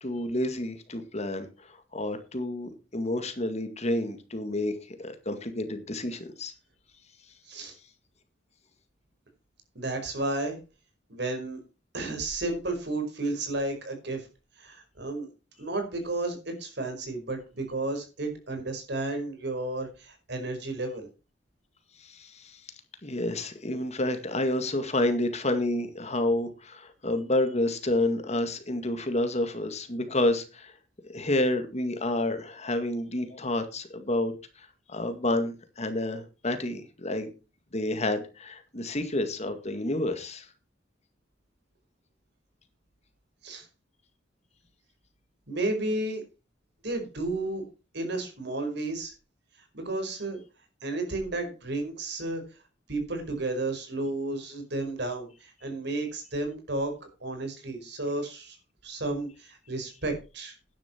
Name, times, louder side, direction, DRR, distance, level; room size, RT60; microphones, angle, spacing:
voice 1, 0.0-6.5 22.0-22.6 23.0-30.7 31.1-34.3 34.6-37.3 37.7-40.5, left 1 dB, 35° left, 2.0 m, -29 dB
voice 2, 9.7-10.6 11.1-11.6 11.9-14.3 14.6-15.3 15.6-21.1 43.4-43.7 45.5-46.2 46.8-47.6 47.9-49.1 49.7-50.4 50.8-52.4 52.9-56.9 57.2-58.6 58.8-60.5, right 2 dB, 65° right, 4.9 m, -32 dB
12.0 x 10.5 x 4.5 m
head